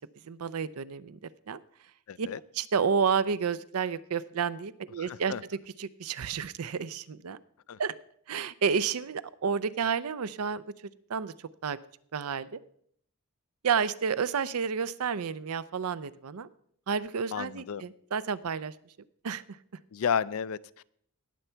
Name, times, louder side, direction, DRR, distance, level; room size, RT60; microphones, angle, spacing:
voice 1, 0.2-1.2 1.5-1.6 2.2-2.3 2.5-7.4 7.8-7.9 8.3-10.6 11.1-11.8 12.1-12.6 13.6-16.5 16.9-18.7 19.2-19.4, right 6 dB, 90° right, 0.5 m, -30 dB
voice 2, 2.1-2.4 5.0-5.4 7.7-7.8 17.3-17.8 19.9-20.8, left 7 dB, 70° left, 0.4 m, -32 dB
18.5 x 6.9 x 4.5 m
head